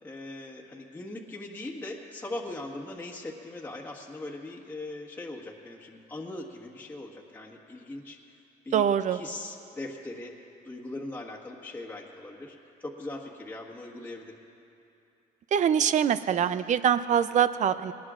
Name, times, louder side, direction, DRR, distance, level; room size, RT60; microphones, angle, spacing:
voice 1, 0.0-8.2 8.6-14.4, left 2 dB, 10° left, -3 dB, 1.5 m, -40 dB
voice 2, 8.7-9.2 15.5-17.9, right 9 dB, 45° right, 13 dB, 0.5 m, -24 dB
22.5 x 19.0 x 2.5 m, 2.8 s
cardioid pair, 110°, 17 cm